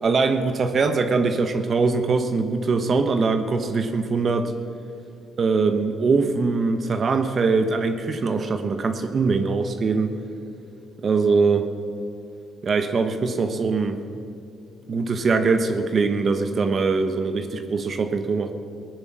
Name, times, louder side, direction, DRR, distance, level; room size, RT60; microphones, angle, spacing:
voice 1, 0.0-4.5 5.4-10.1 11.0-11.7 12.6-14.0 14.9-18.5, right 4 dB, 45° right, 7 dB, 1.1 m, -22 dB
19.0 x 9.6 x 6.4 m, 2.6 s
cardioid pair, 90°, 0 cm